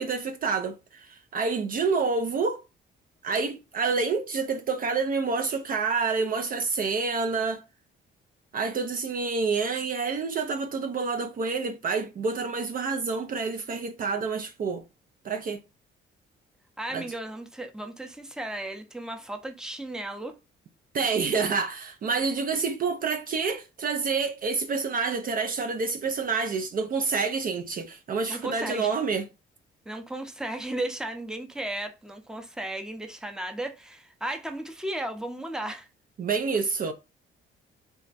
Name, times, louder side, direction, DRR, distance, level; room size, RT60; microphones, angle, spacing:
voice 1, 0.0-2.6 3.2-7.6 8.5-14.8 15.2-15.6 16.9-17.1 20.9-29.3 36.2-36.9, right 4 dB, 45° right, 0.5 m, -28 dB
voice 2, 16.8-20.4 28.3-28.9 29.9-35.9, right 1 dB, 5° right, 0.6 m, -35 dB
3.4 x 2.1 x 4.0 m
cardioid pair, 90°, 20 cm